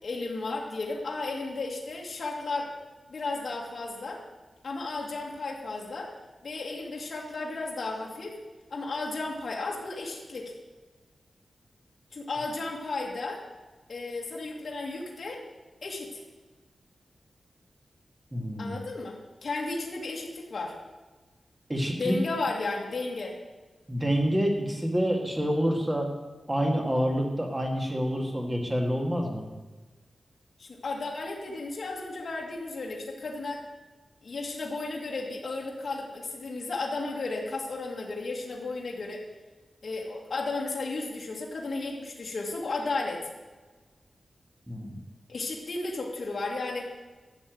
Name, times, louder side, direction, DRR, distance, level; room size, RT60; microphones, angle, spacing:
voice 1, 0.0-2.7 3.1-4.2 4.6-6.1 6.4-8.4 8.7-10.5 12.1-13.4 13.9-15.4 15.8-16.2 18.6-20.7 22.0-23.4 30.6-33.6 34.2-39.2 39.8-43.3 45.3-46.9, left 3 dB, 55° left, -2 dB, 1.9 m, -34 dB
voice 2, 18.3-18.7 21.7-22.2 23.9-26.1 26.5-29.4 44.7-44.9, equal, 15° right, 1 dB, 2.0 m, -27 dB
12.0 x 7.2 x 7.7 m, 1.3 s
wide cardioid pair, 160°, 0 cm